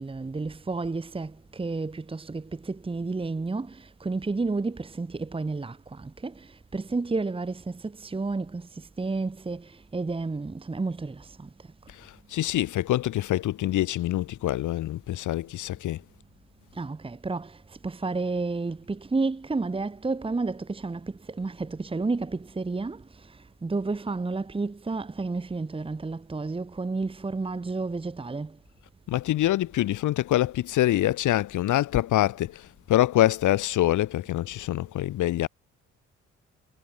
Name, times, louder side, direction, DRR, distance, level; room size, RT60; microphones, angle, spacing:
voice 1, 0.0-11.9 16.7-28.6, right 3 dB, 20° right, 1.3 m, -31 dB
voice 2, 11.9-16.0 29.1-35.5, left 14 dB, 80° left, 1.6 m, -25 dB
cardioid pair, 90°, 30 cm